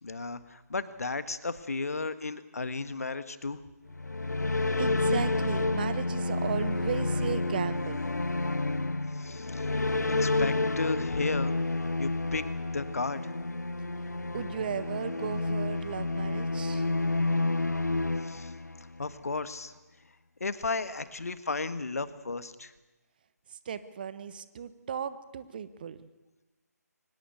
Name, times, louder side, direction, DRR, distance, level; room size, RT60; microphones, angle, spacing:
voice 1, 0.0-3.6 9.1-9.8 10.1-11.6 12.0-12.5 12.7-13.3 18.2-18.5 19.0-19.7 20.4-22.7, left 3 dB, 60° left, 13 dB, 1.5 m, -34 dB
sound 1, 3.9-19.1, left 2 dB, 75° left, 0.7 m, -30 dB
voice 2, 4.8-8.0 14.3-16.9 23.5-26.1, right 7 dB, 30° right, 14 dB, 1.1 m, -36 dB
23.5 x 20.0 x 8.2 m, 1.1 s
figure-of-eight pair, 145°, 9 cm